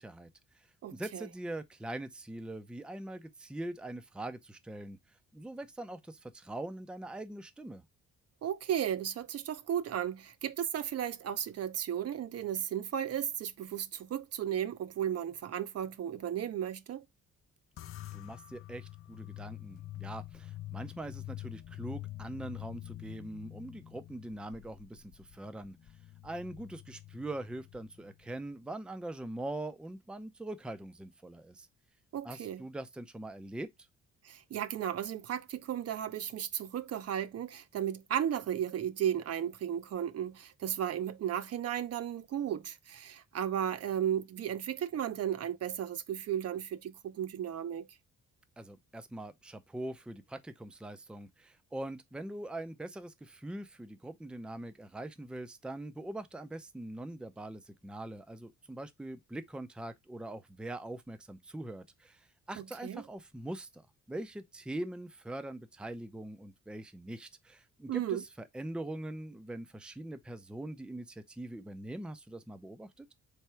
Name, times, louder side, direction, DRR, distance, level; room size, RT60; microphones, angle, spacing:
voice 1, 0.0-5.0 5.3-7.8 18.1-25.8 26.2-31.7 32.2-33.7 48.6-73.1, right 1 dB, 5° right, 0.5 m, -42 dB
voice 2, 0.8-1.3 8.4-17.0 32.1-32.6 34.2-47.9 62.6-63.0 67.9-68.2, right 10 dB, 55° right, 0.6 m, -34 dB
sound 1, 17.8-28.4, left 14 dB, 45° left, 0.5 m, -46 dB
3.5 x 3.4 x 4.3 m
cardioid pair, 90°, 30 cm